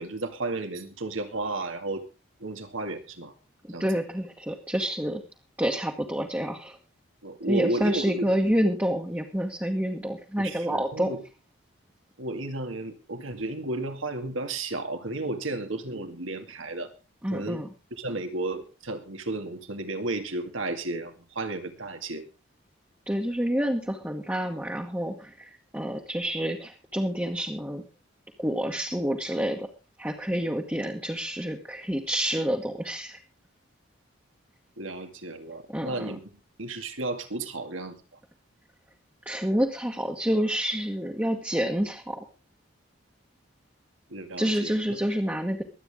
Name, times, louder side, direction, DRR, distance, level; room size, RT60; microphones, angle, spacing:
voice 1, 0.0-2.0 2.4-3.3 3.7-3.9 7.2-8.3 10.4-11.2 12.2-16.9 17.3-17.6 18.0-22.2 34.8-36.2 36.6-38.0 44.1-45.0, right 2 dB, 85° right, 6 dB, 2.3 m, -33 dB
voice 2, 3.8-5.2 5.6-6.8 7.5-11.1 17.2-17.7 23.1-27.8 28.4-29.7 30.0-33.2 35.7-36.1 39.2-42.2 44.4-45.6, equal, 10° right, 1 dB, 1.3 m, -28 dB
23.5 x 8.9 x 3.6 m, 0.31 s
head